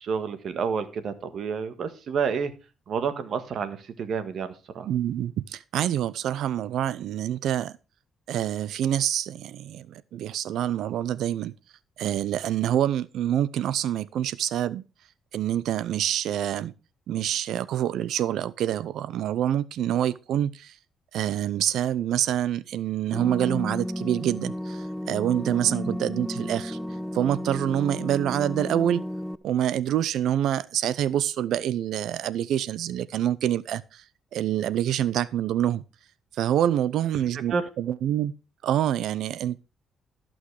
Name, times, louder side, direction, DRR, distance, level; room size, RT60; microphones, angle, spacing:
voice 1, 0.0-2.5 2.9-4.9 37.5-37.6, right 6 dB, 60° right, 1.6 m, -29 dB
voice 2, 4.8-7.7 8.3-11.5 12.0-14.8 15.3-16.7 17.1-20.8 21.1-26.8 27.1-29.0 29.4-34.0 34.3-35.8 36.4-38.3 38.6-39.6, right 11 dB, 80° right, 0.6 m, -26 dB
sound 1, 23.1-29.4, equal, 5° left, 0.6 m, -33 dB
13.5 x 6.2 x 4.8 m
cardioid pair, 90°, 0 cm